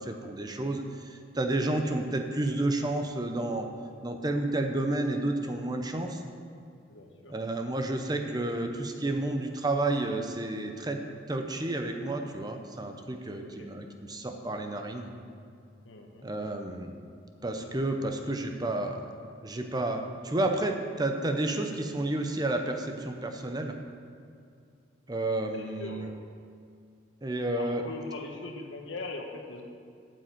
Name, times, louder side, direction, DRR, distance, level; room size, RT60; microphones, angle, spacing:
voice 1, 0.0-3.7 4.0-6.2 7.3-15.1 16.2-16.9 17.4-19.2 19.4-23.8 25.1-26.1 27.2-27.8, right 2 dB, 20° right, 5 dB, 0.7 m, -31 dB
voice 2, 6.9-7.3 13.3-13.7 15.8-16.2 17.5-17.6 18.0-18.2 25.5-26.1 27.6-29.6, left 2 dB, 80° left, 2 dB, 1.3 m, -41 dB
8.7 x 6.4 x 8.4 m, 2.3 s
head